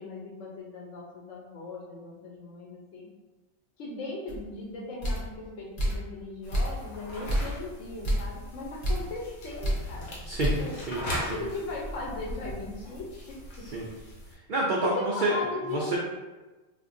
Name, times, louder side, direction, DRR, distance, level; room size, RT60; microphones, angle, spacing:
voice 1, 0.0-3.1 3.8-10.2 10.6-10.8 11.1-13.7 14.8-16.0, left 3 dB, 65° left, -3 dB, 1.0 m, -38 dB
sound 1, 4.3-4.4 5.0-5.3 5.8-6.1 6.5-6.9 7.3-7.6 8.0-8.3 8.8-9.1 9.6-9.9 10.4-10.7 11.1-11.2 11.7-13.2, equal, 45° left, 0.8 m, -30 dB
sound 2, 6.4-14.3, left 1 dB, 85° left, 1.3 m, -40 dB
voice 2, 10.2-10.6 10.9-11.4 13.7-13.9 14.5-15.4 15.7-16.0, right 2 dB, 85° right, -4 dB, 0.4 m, -28 dB
3.6 x 2.5 x 2.5 m, 1.2 s
omnidirectional pair, 1.4 m